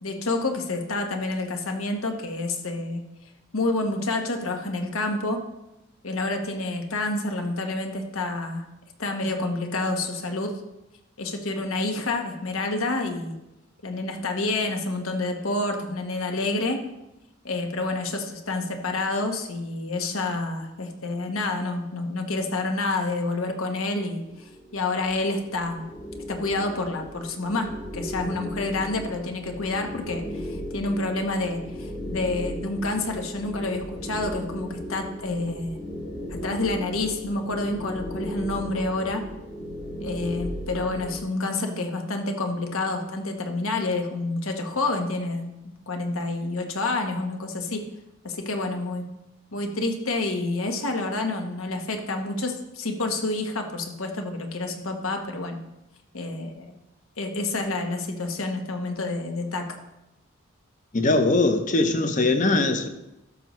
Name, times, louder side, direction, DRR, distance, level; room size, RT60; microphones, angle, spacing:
voice 1, 0.0-3.0 3.5-5.4 6.0-8.6 9.0-10.5 11.2-13.4 13.8-16.8 17.4-24.2 24.7-25.8 26.3-35.8 36.3-39.2 40.0-45.5 45.9-47.8 48.2-49.1 49.5-55.6 56.1-56.7 57.2-59.7, left 2 dB, 80° left, 1.2 m, -28 dB
sound 1, 24.2-41.2, equal, 55° left, 3.7 m, -36 dB
voice 2, 60.9-62.9, left 2 dB, 35° left, 0.7 m, -21 dB
13.0 x 6.7 x 3.1 m
head